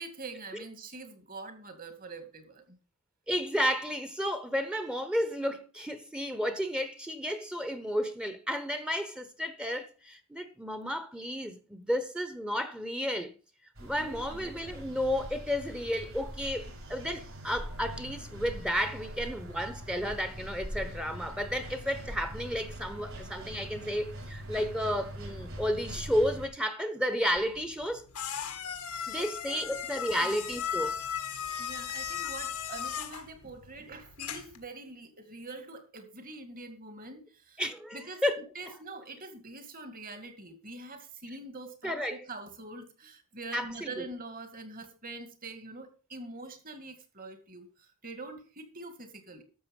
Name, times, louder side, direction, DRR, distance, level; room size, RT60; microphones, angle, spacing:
voice 1, 0.0-2.8 14.0-14.5 29.2-29.7 30.1-30.3 31.6-37.6 37.9-38.2 38.6-47.7 48.0-49.4, right 3 dB, 40° right, 2.3 m, -44 dB
voice 2, 3.3-13.3 13.8-28.1 29.1-31.0 32.2-32.3 37.6-38.8 41.8-42.2 43.5-44.0, equal, 5° right, 1.1 m, -32 dB
sound 1, 13.8-26.5, equal, 65° right, 6.2 m, -42 dB
sound 2, 27.4-34.6, left 8 dB, 85° left, 1.6 m, -37 dB
12.5 x 7.2 x 5.4 m
head